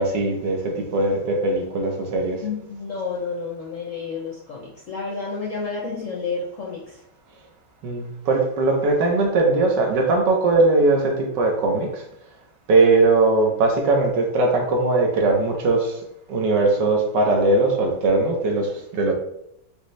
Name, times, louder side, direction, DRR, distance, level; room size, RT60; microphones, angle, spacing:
voice 1, 0.0-2.4 7.8-12.0 12.7-16.0 16.3-19.1, right 2 dB, 70° right, 1 dB, 1.4 m, -20 dB
voice 2, 2.4-7.0, left 4 dB, 65° left, -4 dB, 0.8 m, -30 dB
5.0 x 2.7 x 3.1 m, 0.78 s
omnidirectional pair, 2.1 m